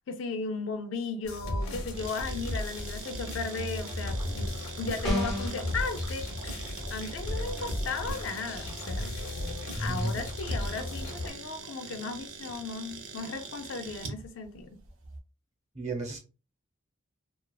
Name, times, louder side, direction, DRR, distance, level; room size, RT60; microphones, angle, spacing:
voice 1, 0.1-4.5 4.8-6.6 6.9-9.1 9.8-14.8, left 4 dB, 70° left, 0.4 m, -36 dB
sound 1, 1.2-11.3, left 1 dB, 90° left, 0.7 m, -35 dB
sound 2, 1.9-15.2, right 5 dB, 75° right, 0.5 m, -44 dB
sound 3, 5.0-5.6, left 1 dB, ahead, 0.5 m, -28 dB
voice 2, 9.8-10.2 15.7-16.2, right 2 dB, 30° right, 0.7 m, -33 dB
2.4 x 2.3 x 2.2 m
head